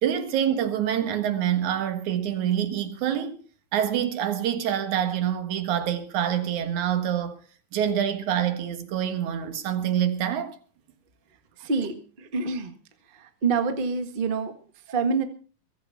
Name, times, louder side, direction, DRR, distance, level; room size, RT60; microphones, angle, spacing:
voice 1, 0.0-3.4 3.7-7.4 7.7-10.6, right 10 dB, 60° right, 2.9 m, -26 dB
voice 2, 11.6-12.7 13.1-14.5 14.9-15.2, right 4 dB, 80° right, 0.4 m, -27 dB
22.0 x 8.1 x 5.7 m
omnidirectional pair, 4.0 m